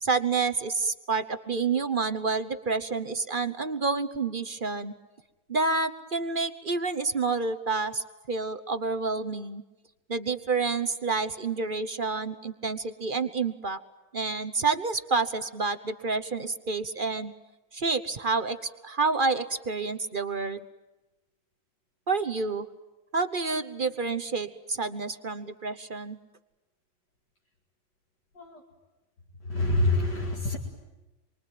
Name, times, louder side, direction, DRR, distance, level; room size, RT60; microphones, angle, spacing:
voice 1, 0.0-4.9 5.5-9.6 10.1-13.8 14.1-17.3 17.7-20.6 22.1-22.7 23.1-26.2, right 4 dB, 35° right, 10 dB, 0.9 m, -29 dB
voice 2, 29.5-30.6, left 2 dB, 60° left, -2 dB, 3.2 m, -26 dB
27.5 x 23.5 x 9.2 m, 1.1 s
omnidirectional pair, 2.0 m